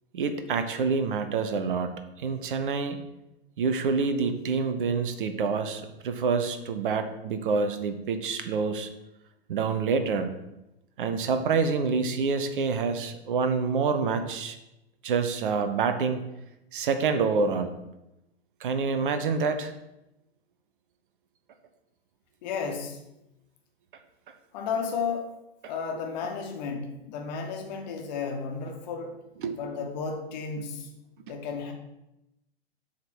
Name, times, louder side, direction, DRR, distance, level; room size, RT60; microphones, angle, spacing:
voice 1, 0.1-3.0 3.6-8.9 9.5-10.3 11.0-14.6 15.0-16.2 16.7-17.8 18.6-19.7 29.4-29.6, right 5 dB, 55° right, 9 dB, 0.8 m, -27 dB
voice 2, 22.4-23.0 24.5-25.3 25.7-29.2 29.6-30.9 31.3-31.7, left 5 dB, 45° left, 3 dB, 1.4 m, -33 dB
7.5 x 3.7 x 6.2 m, 0.92 s
figure-of-eight pair, 105°, 31 cm